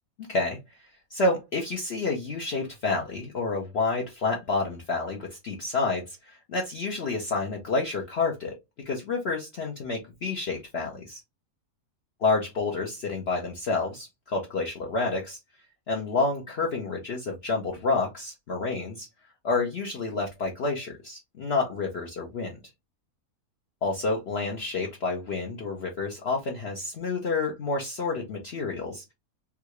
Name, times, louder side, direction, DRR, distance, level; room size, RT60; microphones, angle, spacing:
voice 1, 1.1-8.5 8.8-11.2 12.2-15.4 15.9-19.1 19.4-22.6 23.8-29.1, left 3 dB, 55° left, 0 dB, 0.8 m, -29 dB
3.6 x 2.3 x 3.0 m, 0.22 s
omnidirectional pair, 1.6 m